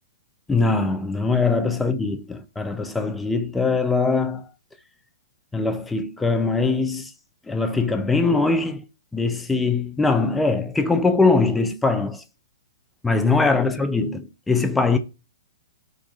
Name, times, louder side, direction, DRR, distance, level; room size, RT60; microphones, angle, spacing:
voice 1, 0.5-4.5 5.5-7.1 7.5-8.8 9.1-12.2 13.0-15.0, left 3 dB, 10° left, 0.3 m, -22 dB
2.4 x 2.2 x 2.5 m
figure-of-eight pair, 115°, 0 cm